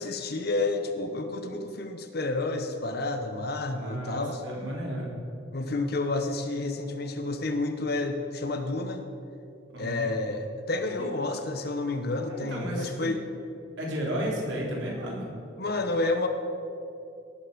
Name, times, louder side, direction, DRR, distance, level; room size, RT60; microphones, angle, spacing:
voice 1, 0.0-4.4 5.5-9.0 9.8-13.2 15.6-16.3, left 2 dB, 55° left, 6 dB, 1.0 m, -30 dB
voice 2, 3.7-5.1 9.7-10.1 12.3-13.1 13.8-15.3, right 1 dB, 75° right, -3 dB, 3.5 m, -33 dB
18.0 x 6.7 x 6.8 m, 2.6 s
head